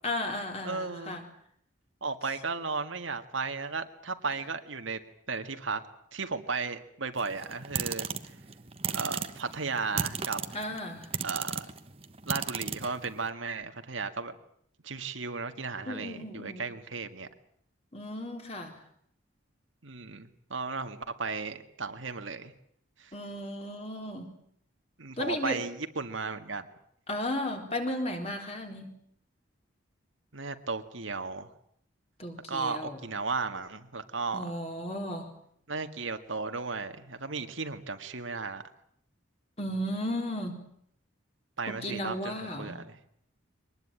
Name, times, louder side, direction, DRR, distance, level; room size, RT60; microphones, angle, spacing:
voice 1, 0.0-1.2 10.5-11.1 15.9-16.7 17.9-18.7 23.1-24.3 25.2-25.6 27.1-28.9 32.2-33.0 34.3-35.3 39.6-40.7 41.7-42.8, left 1 dB, 30° left, 3 dB, 4.0 m, -34 dB
voice 2, 0.6-1.2 2.0-5.0 5.3-5.8 6.1-8.1 8.9-10.4 11.2-11.7 12.3-14.4 14.8-17.3 19.8-22.5 23.0-23.1 25.0-26.7 30.3-31.5 32.5-34.5 35.7-38.6 41.6-43.0, right 4 dB, 75° right, 7 dB, 1.9 m, -35 dB
sound 1, 7.2-13.3, right 6 dB, 30° right, 1.1 m, -35 dB
23.5 x 20.0 x 8.9 m, 0.68 s
head